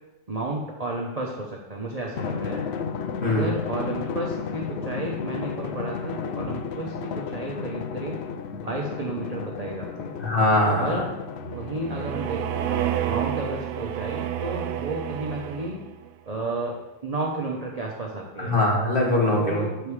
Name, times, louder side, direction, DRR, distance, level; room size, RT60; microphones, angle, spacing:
voice 1, 0.3-2.6 3.2-8.2 8.5-10.2 10.7-11.0 11.5-12.6 13.1-15.8 16.3-18.6 19.4-19.9, right 2 dB, 35° right, -2 dB, 0.7 m, -32 dB
Drum, 2.2-13.2, left 6 dB, 85° left, 0.5 m, -33 dB
voice 2, 3.2-3.5 10.2-11.0 18.4-19.6, left 1 dB, 35° left, -4 dB, 1.8 m, -22 dB
sound 1, 11.4-16.0, right 11 dB, 70° right, 0.9 m, -30 dB
7.8 x 5.4 x 4.7 m, 1.0 s
omnidirectional pair, 1.7 m